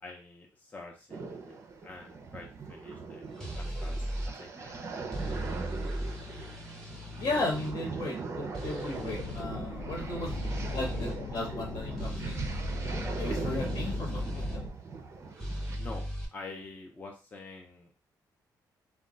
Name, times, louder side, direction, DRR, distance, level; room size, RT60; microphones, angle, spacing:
voice 1, 0.0-4.8 15.8-18.0, left 3 dB, 20° left, -1 dB, 0.5 m, -47 dB
sound 1, 1.1-15.8, right 4 dB, 35° right, 0.5 m, -40 dB
sound 2, 3.4-4.3 5.1-7.7 8.5-9.5 10.3-11.2 12.0-14.6 15.4-16.3, equal, 5° left, 0.9 m, -36 dB
voice 2, 7.2-10.3 10.7-12.4 13.2-14.5, left 2 dB, 65° left, 0 dB, 1.1 m, -35 dB
sound 3, 8.9-14.7, left 3 dB, 90° left, 0.6 m, -40 dB
2.2 x 2.2 x 3.8 m, 0.32 s
cardioid pair, 125°, 8 cm